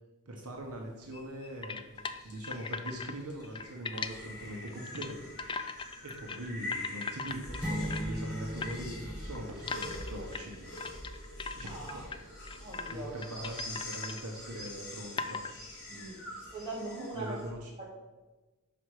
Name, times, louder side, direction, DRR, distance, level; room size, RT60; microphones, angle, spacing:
voice 1, 0.3-1.8 2.2-5.8 6.0-10.7 11.5-12.1 12.9-15.4 15.9-16.1 17.1-17.7, right 1 dB, 75° right, 1 dB, 1.0 m, -42 dB
sound 1, 0.5-17.5, left 1 dB, 70° left, 2.1 m, -45 dB
sound 2, 1.6-3.1 3.4-4.1 4.7-5.1 5.4-6.4 6.7-8.2 8.6-8.7 9.3-12.2 12.5-12.9 13.2-14.2 14.6-14.7 15.1-15.6, left 5 dB, 25° left, 0.3 m, -39 dB
sound 3, 7.6-10.4, equal, 5° right, 1.1 m, -39 dB
voice 2, 11.6-12.0 12.6-13.2 15.9-16.1 16.5-17.4 17.8-18.0, right 2 dB, 20° right, -5 dB, 2.3 m, -41 dB
6.0 x 5.0 x 4.8 m, 1.1 s
head